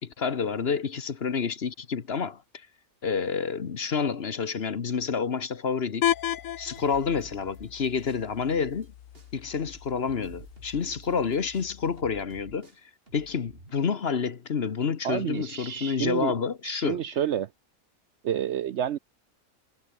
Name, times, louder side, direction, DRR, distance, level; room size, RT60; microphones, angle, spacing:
voice 1, 0.0-2.7 3.0-6.1 6.6-8.9 9.3-17.0, left 6 dB, 50° left, 1.3 m, -29 dB
sound 1, 6.0-12.0, left 11 dB, 70° left, 1.1 m, -35 dB
sound 2, 6.8-8.9 9.1-13.7, right 3 dB, 40° right, 3.2 m, -51 dB
voice 2, 15.0-16.4 16.6-17.5 18.2-19.0, right 10 dB, 60° right, 0.8 m, -29 dB
omnidirectional pair, 1.5 m